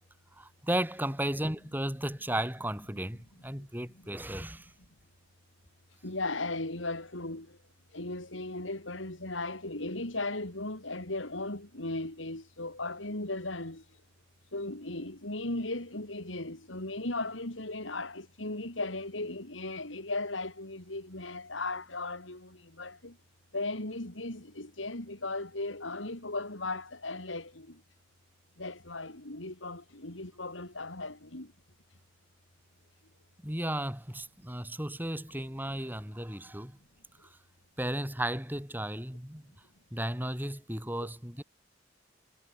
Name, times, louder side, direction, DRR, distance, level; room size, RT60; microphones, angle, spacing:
voice 1, 0.4-4.7 33.4-36.8 37.2-37.3 37.8-39.5 39.9-41.4, right 1 dB, 10° right, 5.7 m, -34 dB
voice 2, 6.0-7.5 7.9-13.8 14.5-23.1 23.5-27.7 28.6-31.5, left 2 dB, 85° left, 4.6 m, -37 dB
head